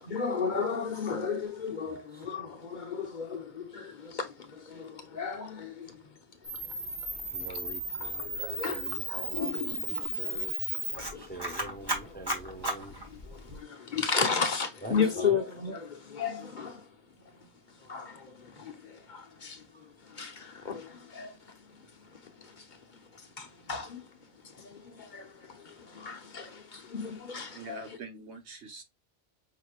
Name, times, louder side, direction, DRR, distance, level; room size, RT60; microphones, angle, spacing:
voice 1, 0.0-6.0 8.0-11.5 11.8-12.4 13.1-16.9 17.8-19.6 20.1-21.6 22.1-22.7 23.4-24.0 24.4-27.8, left 6 dB, 50° left, 0.9 m, -35 dB
voice 2, 1.9-2.2 7.3-8.3 8.7-10.6 11.1-13.0 14.8-15.4 19.7-19.8, right 2 dB, 10° left, 0.5 m, -44 dB
Camera, 6.4-13.6, right 1 dB, 20° right, 1.3 m, -35 dB
voice 3, 27.5-28.8, right 4 dB, 85° right, 1.5 m, -44 dB
5.7 x 3.1 x 2.4 m
omnidirectional pair, 1.1 m